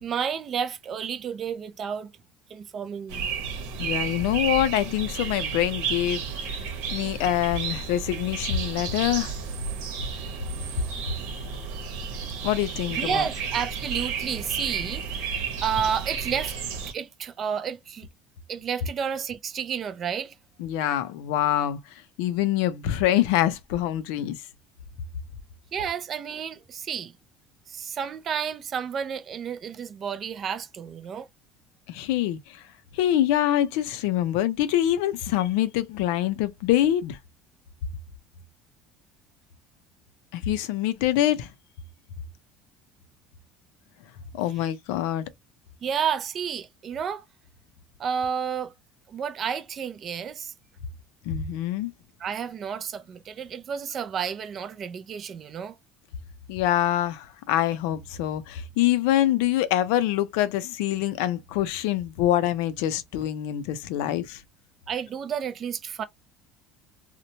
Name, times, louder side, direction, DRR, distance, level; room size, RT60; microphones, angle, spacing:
voice 1, 0.0-2.1 2.5-3.3 12.9-15.3 15.6-16.5 16.8-18.1 18.5-20.3 25.7-27.1 27.7-31.3 45.8-47.2 48.0-48.7 49.1-50.5 52.2-55.8 64.9-66.0, right 7 dB, 30° right, 0.3 m, -31 dB
sound 1, 3.1-16.9, right 6 dB, 90° right, 0.9 m, -32 dB
voice 2, 3.8-6.2 6.5-6.6 6.9-9.3 12.4-13.2 20.6-21.8 22.2-24.4 31.9-32.4 32.9-37.2 40.3-41.5 44.3-45.2 51.3-51.9 56.5-64.4, left 12 dB, 85° left, 0.4 m, -25 dB
2.9 x 2.1 x 2.7 m
cardioid pair, 170°, 0 cm